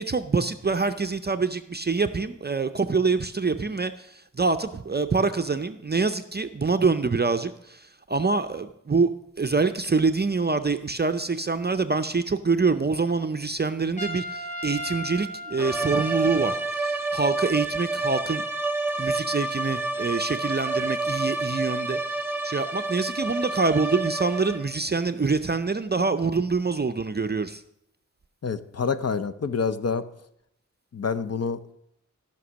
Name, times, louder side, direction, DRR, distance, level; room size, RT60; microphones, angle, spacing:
voice 1, 0.0-18.4 19.0-27.6, right 4 dB, 35° right, 9 dB, 0.5 m, -25 dB
Trumpet, 14.0-16.6, equal, 25° left, 2.1 m, -36 dB
sound 1, 15.6-24.8, right 2 dB, 10° right, 1.2 m, -28 dB
voice 2, 28.4-30.0 30.9-31.7, left 5 dB, 55° left, 12 dB, 0.7 m, -27 dB
14.5 x 6.0 x 6.2 m, 0.76 s
wide cardioid pair, 80°, 31 cm